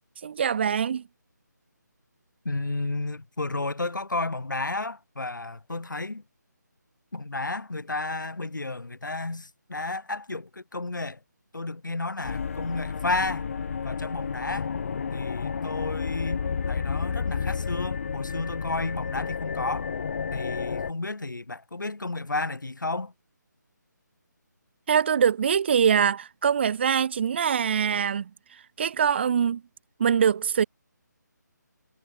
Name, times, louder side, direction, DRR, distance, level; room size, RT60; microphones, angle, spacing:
voice 1, 0.2-1.0 24.9-28.3 28.8-29.6 30.0-30.6, right 7 dB, 35° right, 0.8 m, -23 dB
voice 2, 2.5-6.2 7.1-11.2 11.5-13.5 13.8-14.7 15.1-19.9 20.3-23.1, left 2 dB, 80° left, 2.1 m, -32 dB
sound 1, 12.2-20.9, left 6 dB, 45° left, 4.9 m, -31 dB
figure-of-eight pair, 155°, 10 cm